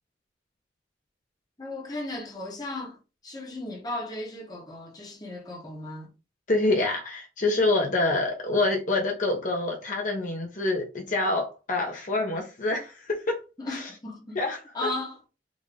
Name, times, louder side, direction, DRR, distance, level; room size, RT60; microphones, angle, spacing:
voice 1, 1.6-3.0 3.2-6.1 13.6-14.4 14.7-15.2, left 2 dB, 20° left, 1.0 m, -35 dB
voice 2, 6.5-13.4 13.7-13.9 14.3-14.9, left 2 dB, 45° left, 0.8 m, -26 dB
3.7 x 2.6 x 3.3 m
head